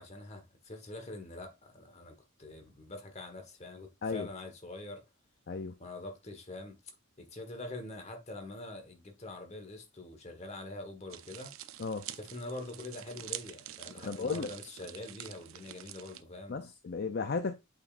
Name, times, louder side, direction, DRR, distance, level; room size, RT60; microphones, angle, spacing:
voice 1, 0.0-5.0 5.8-6.8 7.2-11.6 12.1-16.6, left 2 dB, 30° left, 1.4 m, -44 dB
sound 1, 11.1-16.2, right 12 dB, 75° right, 0.5 m, -46 dB
voice 2, 14.0-14.5 16.5-17.5, left 4 dB, 50° left, 0.5 m, -34 dB
8.2 x 5.1 x 2.5 m
head